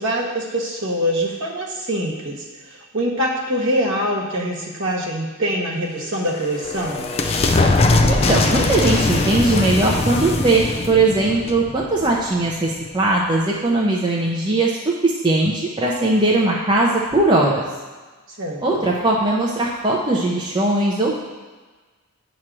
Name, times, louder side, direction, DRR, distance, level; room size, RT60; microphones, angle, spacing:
voice 1, 0.0-7.1 18.4-18.8, equal, 55° right, -2 dB, 1.3 m, -24 dB
sound 1, 6.0-12.5, left 2 dB, 25° left, 0.4 m, -21 dB
voice 2, 8.1-17.6 18.6-21.2, right 2 dB, 20° right, -4 dB, 0.7 m, -19 dB
8.9 x 3.1 x 6.0 m, 1.3 s
head